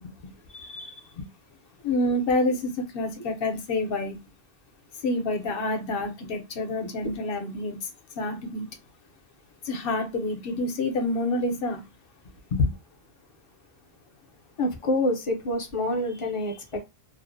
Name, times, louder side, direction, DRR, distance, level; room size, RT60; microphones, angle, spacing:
voice 1, 0.0-1.3 1.8-4.2 5.0-7.9 8.2-8.7 9.6-11.8 12.5-12.7, left 2 dB, 65° left, 0.8 m, -28 dB
voice 2, 14.6-16.8, left 1 dB, 40° left, 0.5 m, -27 dB
2.5 x 2.0 x 2.5 m
omnidirectional pair, 1.1 m